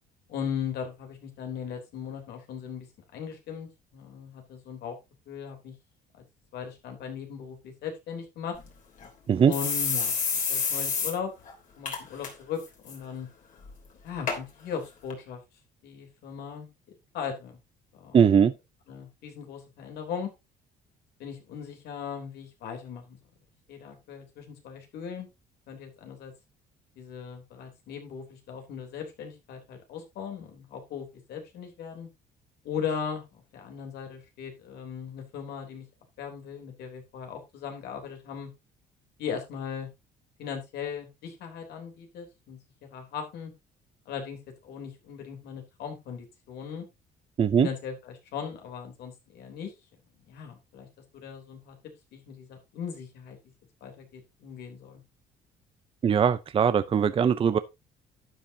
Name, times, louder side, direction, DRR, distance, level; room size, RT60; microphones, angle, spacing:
voice 1, 0.3-2.9 3.1-5.0 5.3-5.7 6.1-6.2 6.5-8.6 9.5-10.2 10.5-11.3 11.8-13.3 14.0-15.4 15.8-16.7 17.1-17.6 17.9-18.2 18.9-20.3 21.2-23.2 23.7-25.3 25.7-26.3 27.0-32.1 32.6-35.8 36.2-38.5 39.2-39.9 40.4-43.5 44.1-46.9 47.6-49.7 50.2-50.9 51.1-51.8 52.1-53.4 53.8-55.0, left 7 dB, 75° left, 3.5 m, -38 dB
sound 1, 8.6-8.7 9.0-9.1 9.5-11.1 11.5-11.6 11.9-12.3 12.6-13.0 13.6-13.7 14.3-14.4 15.1-15.2, left 6 dB, 50° left, 3.3 m, -28 dB
voice 2, 18.1-18.5 47.4-47.7 56.0-57.6, right 7 dB, 35° right, 0.6 m, -21 dB
12.0 x 8.4 x 2.8 m
cardioid pair, 110°, 17 cm